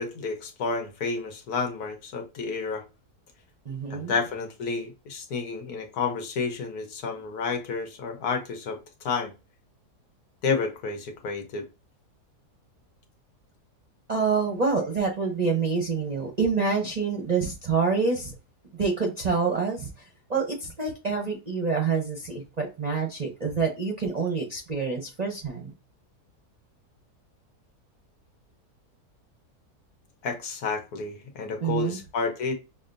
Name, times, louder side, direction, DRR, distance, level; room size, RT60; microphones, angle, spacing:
voice 1, 0.0-2.8 3.9-9.3 10.4-11.7 30.2-32.5, left 4 dB, 75° left, 1.5 m, -30 dB
voice 2, 3.7-4.1 14.1-18.3 18.8-19.9 20.3-25.7 31.6-32.0, right 5 dB, 40° right, 0.6 m, -27 dB
6.2 x 2.2 x 2.5 m
omnidirectional pair, 1.7 m